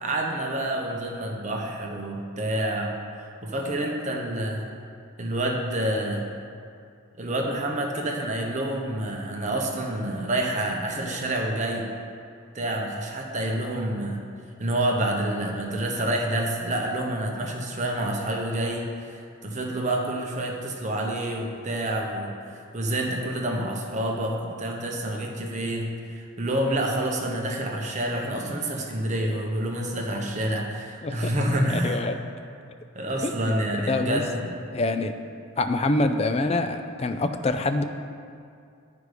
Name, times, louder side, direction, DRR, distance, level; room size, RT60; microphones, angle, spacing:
voice 1, 0.0-4.7 5.2-6.3 7.2-11.9 12.5-14.2 14.6-32.0 32.9-34.6, right 1 dB, 35° right, 0 dB, 0.9 m, -28 dB
voice 2, 31.8-32.2 33.2-33.6 33.9-34.2 34.7-35.1 35.6-37.8, left 2 dB, 30° left, 8 dB, 0.4 m, -25 dB
9.7 x 5.2 x 4.9 m, 2.4 s
head